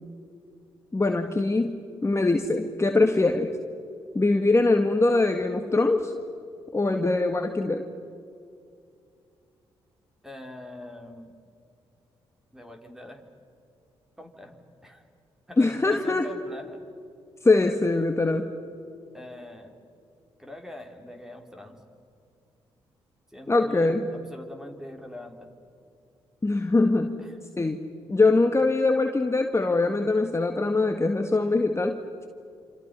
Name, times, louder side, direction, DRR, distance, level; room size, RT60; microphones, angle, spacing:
voice 1, 0.9-3.5 4.1-6.1 6.7-7.9 15.6-16.3 17.4-18.5 23.5-24.0 26.4-27.2 27.6-27.8 28.1-32.3, left 3 dB, 25° left, 4 dB, 1.8 m, -23 dB
voice 2, 10.2-11.4 12.5-13.2 14.2-15.1 15.5-16.8 19.1-19.8 20.4-21.8 23.3-25.5 27.2-27.4, left 1 dB, 5° right, 3 dB, 4.6 m, -43 dB
28.0 x 27.5 x 5.7 m, 2.5 s
hypercardioid pair, 50°, 11 cm